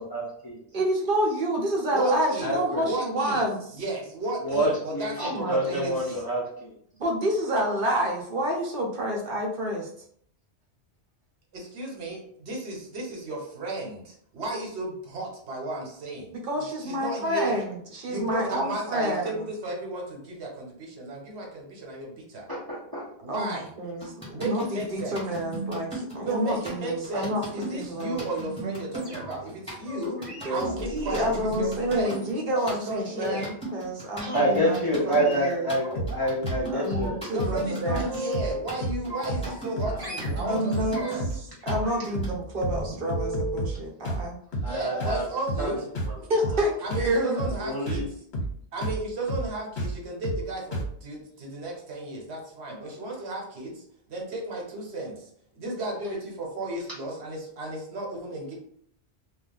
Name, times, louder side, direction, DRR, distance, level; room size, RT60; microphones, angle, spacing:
voice 1, 0.0-0.6 2.4-2.9 4.4-6.7 22.5-23.1 34.2-37.2 39.9-40.0 44.6-45.3 45.6-45.8 47.3-48.0, right 1 dB, 25° left, -6 dB, 0.6 m, -28 dB
voice 2, 0.7-3.6 5.2-6.0 7.0-9.9 16.4-19.4 23.3-24.1 24.4-27.4 27.7-28.2 29.9-34.8 35.1-35.7 36.7-38.0 40.4-41.0 41.6-44.4 46.3-47.4, equal, 55° right, -1 dB, 0.9 m, -28 dB
voice 3, 1.9-2.5 2.8-3.4 3.7-6.2 11.5-16.3 16.7-17.6 18.1-22.5 23.2-23.7 24.3-25.2 26.2-30.2 30.5-32.3 32.6-33.5 37.3-41.3 44.6-45.8 46.8-48.1 48.7-58.5, right 2 dB, 75° right, 0 dB, 1.1 m, -34 dB
sound 1, 24.0-42.3, right 1 dB, 5° left, 1.4 m, -37 dB
sound 2, 28.9-29.6 30.2-32.7 33.2-33.5 34.2-34.5 35.1-36.3 36.6-37.2 37.5-38.7 39.1-39.7 40.0-41.3 41.6-43.7 44.9-45.3 46.0-46.2 46.4-46.7 47.0-47.2 47.5-47.6, right 1 dB, 25° right, 1.0 m, -38 dB
sound 3, 36.0-36.2 36.4-36.6 36.9-37.1 37.4-37.6 37.9-38.1 38.3-38.6 38.8-39.0 39.3-39.5 39.8-40.0 40.2-40.5 40.7-40.9 41.2-41.4 41.7-41.9 42.1-42.4 42.6-42.8 43.1-43.8 44.0-44.3 44.5-44.7 45.0-45.2 45.5-45.7 46.0-46.2 46.4-46.6 46.9-47.1 47.4-47.6 47.9-48.1 48.3-48.6 48.8-49.0 49.3-49.5 49.8-50.0 50.2-50.5 50.7-50.9, right 1 dB, 75° left, 1.2 m, -30 dB
2.4 x 2.1 x 3.9 m, 0.66 s
omnidirectional pair, 1.1 m